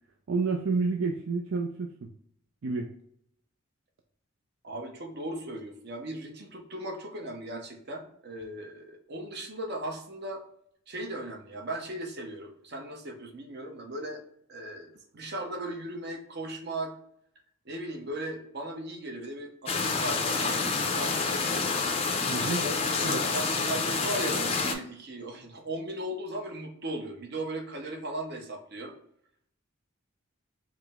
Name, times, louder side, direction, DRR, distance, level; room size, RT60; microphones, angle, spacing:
voice 1, 0.3-2.1 2.6-2.9 22.3-22.7 23.0-23.3, right 4 dB, 70° right, 1 dB, 0.4 m, -29 dB
voice 2, 4.6-10.4 10.9-14.2 14.5-16.9 17.6-21.7 22.5-28.9, right 1 dB, 50° right, 2 dB, 0.8 m, -37 dB
sound 1, 19.7-24.7, left 4 dB, 30° left, 0.5 m, -28 dB
4.9 x 2.1 x 3.5 m, 0.68 s
head